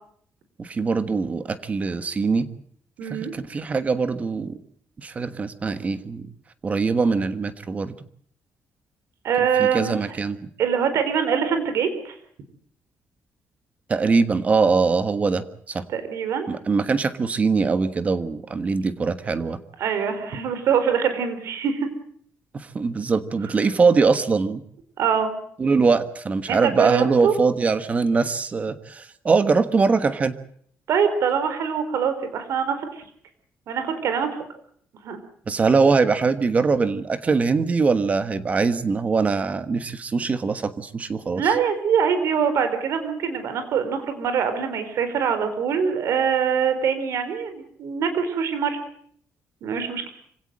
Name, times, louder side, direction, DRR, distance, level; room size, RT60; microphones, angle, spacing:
voice 1, 0.6-2.5 3.1-4.6 5.0-6.3 6.6-7.9 9.6-10.4 13.9-15.9 16.5-19.6 22.5-24.6 25.6-30.3 35.5-41.4, right 4 dB, 30° right, 12 dB, 1.4 m, -22 dB
voice 2, 3.0-3.3 9.2-10.0 10.6-12.2 15.9-16.5 19.8-21.9 25.0-25.3 26.5-27.3 30.9-33.0 33.7-34.4 35.0-35.2 41.3-48.8 49.6-50.1, right 7 dB, 70° right, 9 dB, 4.3 m, -23 dB
26.0 x 17.5 x 7.7 m, 0.64 s
cardioid pair, 160°, 5 cm